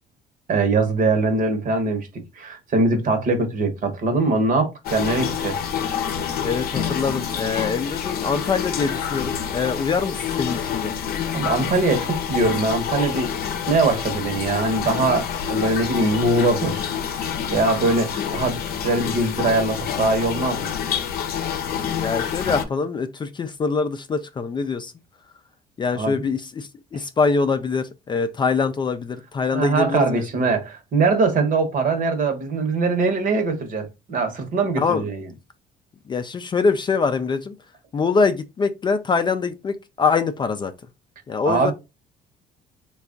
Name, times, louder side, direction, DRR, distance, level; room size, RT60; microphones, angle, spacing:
voice 1, 0.5-5.6 11.3-13.3 13.7-16.9 17.5-20.7 25.9-26.2 29.5-35.3 41.4-41.7, right 3 dB, 55° right, 1.0 m, -22 dB
sound 1, 4.8-22.6, left 8 dB, 65° left, 0.6 m, -27 dB
voice 2, 6.4-10.9 18.1-18.2 22.0-24.9 25.8-30.2 34.8-35.0 36.1-37.5 37.9-40.7 41.3-41.7, left 4 dB, 25° left, 0.4 m, -24 dB
3.3 x 2.3 x 3.7 m
cardioid pair, 110°, 17 cm